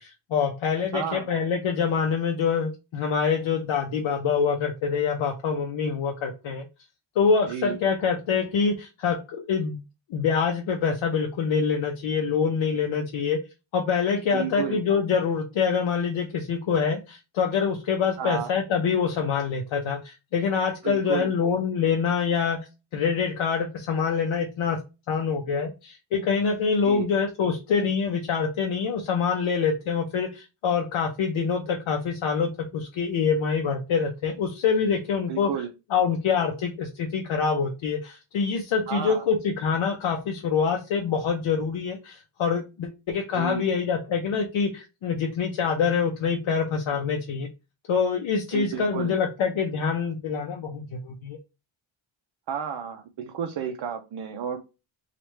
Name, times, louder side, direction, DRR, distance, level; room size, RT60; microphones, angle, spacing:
voice 1, 0.0-6.6 7.2-9.8 10.1-13.4 13.7-22.6 22.9-24.8 25.1-35.5 35.9-47.5 47.9-51.4, left 6 dB, 75° left, 2 dB, 0.6 m, -25 dB
voice 2, 0.9-1.3 7.5-7.8 14.3-14.8 18.2-18.5 20.8-21.3 26.8-27.1 35.3-35.7 38.9-39.2 43.3-43.6 48.5-49.2 52.5-54.6, right 8 dB, 60° right, 3 dB, 0.5 m, -31 dB
3.0 x 2.4 x 3.1 m, 0.28 s
wide cardioid pair, 175°, 48 cm